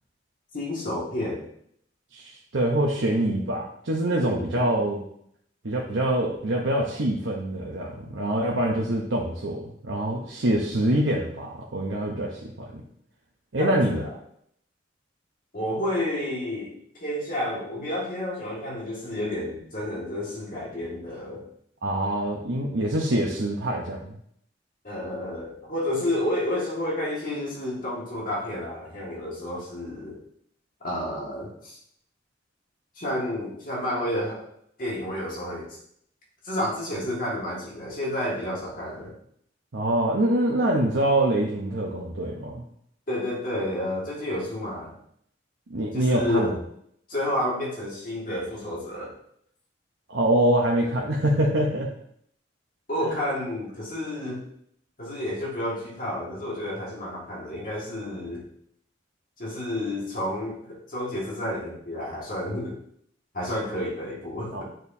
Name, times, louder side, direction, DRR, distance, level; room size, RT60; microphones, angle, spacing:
voice 1, 0.5-1.4 4.2-4.8 13.6-14.1 15.5-16.7 17.0-21.4 24.8-30.2 30.8-31.8 33.0-34.5 34.8-35.8 36.4-39.1 43.1-44.9 45.9-46.6 47.1-49.1 52.9-54.5 55.0-58.5 59.4-62.8 63.3-64.6, left 1 dB, 45° left, -5 dB, 2.0 m, -30 dB
voice 2, 2.1-5.0 5.6-12.8 13.5-14.0 21.8-24.2 39.7-42.6 45.7-46.6 50.1-51.9 53.0-53.1 64.5-64.6, right 1 dB, 90° right, -2 dB, 0.9 m, -25 dB
9.1 x 4.4 x 2.7 m, 0.68 s
head